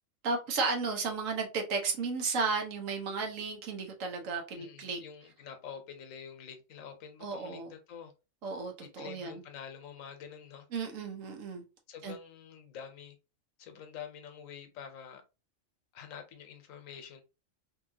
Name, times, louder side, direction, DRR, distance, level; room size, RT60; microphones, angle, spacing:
voice 1, 0.2-5.0 7.2-7.7 8.4-9.4 10.7-11.6 12.0-12.2, right 4 dB, 75° right, 1.2 m, -34 dB
voice 2, 4.6-8.1 8.8-10.7 11.9-13.2 13.6-15.2 15.9-17.2, left 7 dB, 85° left, 1.1 m, -47 dB
2.8 x 2.8 x 2.6 m
omnidirectional pair, 1.4 m